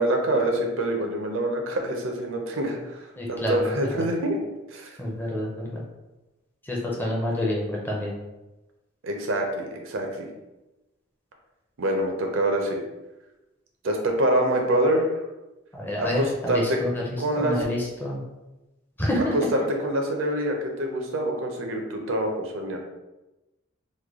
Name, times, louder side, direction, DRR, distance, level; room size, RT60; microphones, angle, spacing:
voice 1, 0.0-3.0 3.3-4.4 4.7-4.9 9.0-10.3 11.8-12.8 13.8-15.2 16.0-16.8 17.2-17.7 19.5-22.8, right 1 dB, 75° right, 2 dB, 0.6 m, -25 dB
voice 2, 3.2-4.0 5.0-5.8 6.6-8.1 15.7-18.2 19.0-19.3, left 1 dB, 10° left, -3 dB, 0.5 m, -28 dB
3.2 x 2.2 x 3.5 m, 1.0 s
head